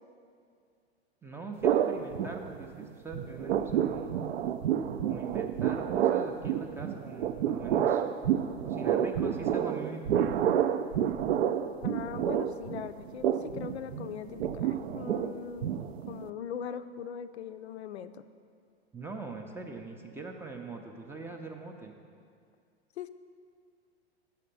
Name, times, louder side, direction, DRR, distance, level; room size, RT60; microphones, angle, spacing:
voice 1, 1.2-4.2 5.0-8.0 8.6-10.1 18.9-21.9, right 3 dB, 5° right, 3 dB, 0.4 m, -42 dB
sound 1, 1.6-2.9 3.1-16.3, right 9 dB, 70° right, 0.5 m, -29 dB
voice 2, 11.8-15.7 16.1-18.2 23.0-23.1, left 8 dB, 75° left, 11 dB, 0.5 m, -40 dB
6.7 x 5.0 x 6.7 m, 2.3 s
figure-of-eight pair, 95°, 34 cm